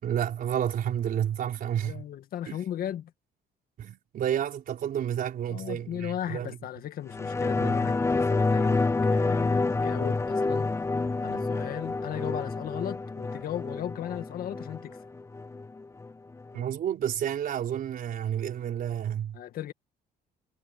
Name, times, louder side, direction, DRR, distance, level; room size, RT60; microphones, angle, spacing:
voice 1, 0.0-2.0 2.5-2.6 3.8-6.6 7.6-7.9 16.5-19.4, right 10 dB, 55° right, 4.5 m, -30 dB
voice 2, 1.8-3.1 5.5-10.7 11.2-15.0 19.3-19.7, left 11 dB, 60° left, 1.8 m, -36 dB
sound 1, 7.1-16.1 16.5-16.6, left 3 dB, 15° left, 0.8 m, -28 dB
cardioid pair, 110°, 17 cm